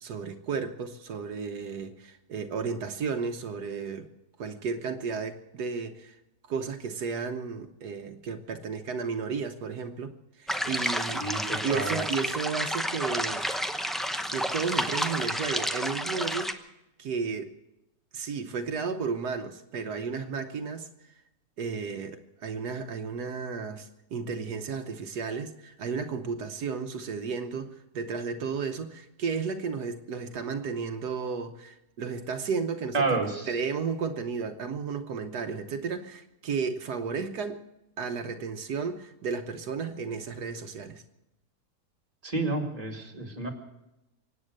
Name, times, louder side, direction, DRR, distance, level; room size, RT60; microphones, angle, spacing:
voice 1, 0.0-4.1 4.4-6.2 6.5-10.1 10.4-11.3 11.6-13.7 14.3-16.7 17.0-17.5 18.1-20.9 21.6-33.0 33.5-37.6 38.0-41.0, right 5 dB, 80° right, 6 dB, 1.5 m, -33 dB
sound 1, 10.5-16.5, equal, ahead, 0.6 m, -30 dB
voice 2, 11.2-12.0 32.9-33.5 42.2-43.5, right 3 dB, 25° right, 1 dB, 2.4 m, -30 dB
24.5 x 9.2 x 6.5 m, 0.91 s
omnidirectional pair, 1.7 m